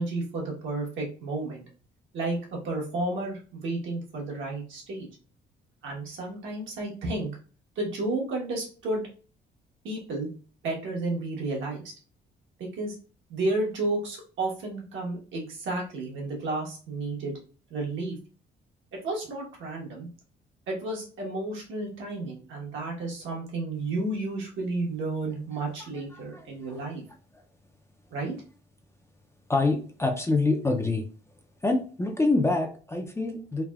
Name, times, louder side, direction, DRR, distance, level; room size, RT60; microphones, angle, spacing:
voice 1, 0.0-1.6 2.1-5.1 5.8-7.3 7.8-9.1 9.8-10.3 10.6-11.9 12.6-12.9 13.3-17.3 17.7-18.1 19.0-20.1 20.7-27.0 28.1-28.3, right 2 dB, 75° right, -2 dB, 1.1 m, -32 dB
voice 2, 26.1-26.4 26.7-26.8 29.5-31.1 31.6-33.6, left 3 dB, 15° left, 4 dB, 0.4 m, -26 dB
3.3 x 2.1 x 2.3 m, 0.39 s
cardioid pair, 90°, 20 cm